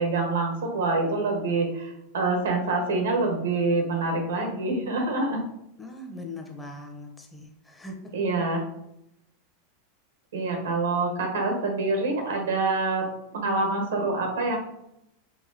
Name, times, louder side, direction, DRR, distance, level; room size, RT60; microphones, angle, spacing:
voice 1, 0.0-5.4 8.1-8.6 10.3-13.1 13.3-14.6, right 3 dB, 90° right, 2 dB, 1.1 m, -26 dB
voice 2, 5.8-8.1, left 2 dB, 10° left, 2 dB, 0.7 m, -40 dB
4.2 x 2.7 x 2.6 m, 0.81 s
supercardioid pair, 125°, 0 cm